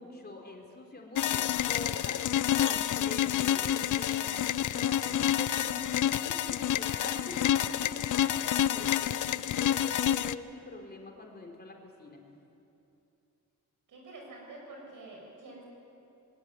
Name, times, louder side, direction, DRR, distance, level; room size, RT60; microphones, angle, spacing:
voice 1, 0.0-5.8 6.2-9.1 9.5-12.2, left 2 dB, 30° left, 0 dB, 3.7 m, -44 dB
sound 1, 1.1-10.3, left 11 dB, 75° left, 0.6 m, -28 dB
voice 2, 13.9-15.6, right 2 dB, 85° right, -1 dB, 7.1 m, -47 dB
21.0 x 19.0 x 9.4 m, 2.8 s
cardioid pair, 95°, 31 cm